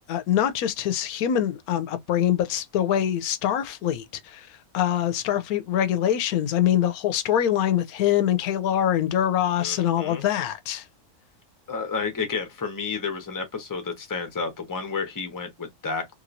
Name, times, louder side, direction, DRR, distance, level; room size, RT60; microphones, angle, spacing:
voice 1, 0.1-10.9, left 10 dB, 85° left, 1.1 m, -24 dB
voice 2, 9.6-10.2 11.7-16.1, left 5 dB, 15° left, 0.7 m, -31 dB
3.2 x 2.9 x 2.5 m
omnidirectional pair, 1.5 m